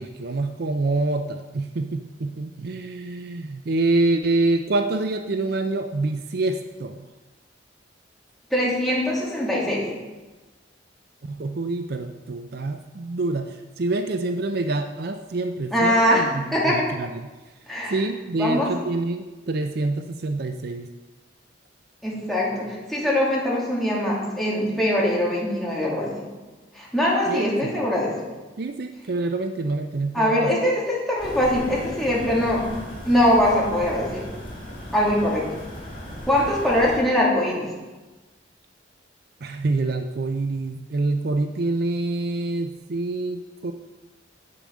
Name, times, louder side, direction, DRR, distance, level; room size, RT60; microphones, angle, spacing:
voice 1, 0.0-7.1 11.2-17.3 17.9-20.9 27.3-27.7 28.6-30.5 39.4-43.7, right 2 dB, 55° right, 7 dB, 0.5 m, -26 dB
voice 2, 8.5-9.8 15.7-16.2 16.5-16.9 17.7-18.0 18.4-18.7 22.0-26.3 26.7-28.1 30.1-32.6 33.0-34.3 34.9-35.5 36.3-37.7, left 1 dB, ahead, -6 dB, 2.5 m, -22 dB
sound 1, 31.2-37.0, equal, 30° left, 3.7 m, -37 dB
8.5 x 6.9 x 6.3 m, 1.2 s
head